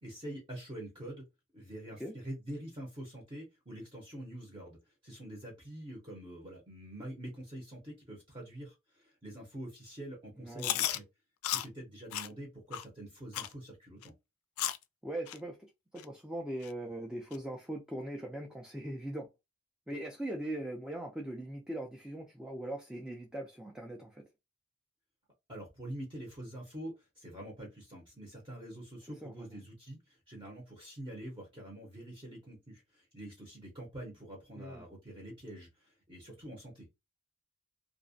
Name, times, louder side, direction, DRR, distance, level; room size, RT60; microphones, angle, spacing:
voice 1, 0.0-1.3 1.5-11.1 11.5-14.1 25.5-36.9, right 1 dB, 25° right, 0.7 m, -46 dB
voice 2, 10.4-10.8 15.0-15.6 15.9-19.3 19.9-24.2 29.2-29.5 34.6-34.8, right 1 dB, 5° right, 0.3 m, -40 dB
Chewing mastication, 10.6-11.0 11.4-11.7 12.1-12.3 12.7-12.8 13.3-13.5 14.0-14.1 14.6-14.8 15.3-15.4 16.0-16.1 16.6-16.7 17.3-17.4, left 12 dB, 90° left, 0.3 m, -33 dB
2.4 x 2.1 x 2.6 m
head